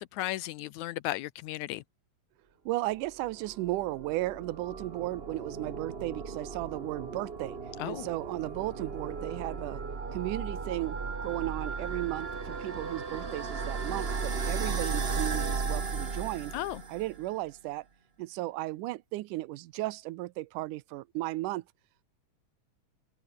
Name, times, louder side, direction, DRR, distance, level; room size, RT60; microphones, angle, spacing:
voice 1, 0.0-1.8 7.8-8.1 16.5-16.8, left 16 dB, 80° left, 2.0 m, -35 dB
voice 2, 2.7-7.6 7.8-9.8 10.1-16.6 16.9-17.8 18.2-21.6, right 18 dB, 90° right, 2.3 m, -35 dB
sound 1, 3.0-17.2, right 4 dB, 30° right, 1.1 m, -36 dB
open air
omnidirectional pair, 3.5 m